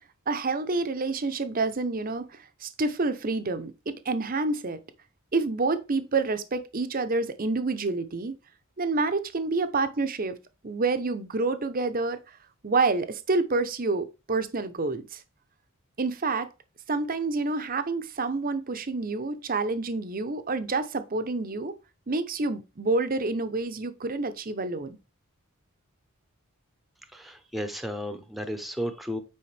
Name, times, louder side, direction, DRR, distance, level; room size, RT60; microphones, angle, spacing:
voice 1, 0.3-4.8 5.3-8.4 8.8-10.4 10.6-12.2 12.6-15.2 16.0-16.5 16.9-21.7 22.1-25.0, right 3 dB, 40° right, 0.8 m, -28 dB
voice 2, 27.1-29.2, equal, ahead, 0.8 m, -33 dB
8.5 x 4.9 x 3.4 m
head